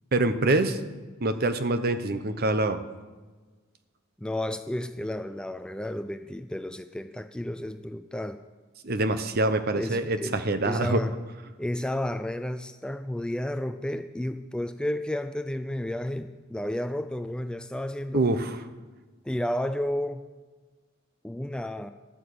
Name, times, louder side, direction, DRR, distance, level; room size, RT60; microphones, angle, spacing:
voice 1, 0.1-0.8 1.2-2.8 8.8-11.0 18.1-18.6, right 2 dB, 50° right, 10 dB, 0.8 m, -25 dB
voice 2, 4.2-8.4 9.7-11.2 11.6-18.3 19.2-20.3 21.2-21.9, left 1 dB, 5° left, 9 dB, 0.3 m, -32 dB
12.0 x 8.9 x 6.8 m, 1.4 s
head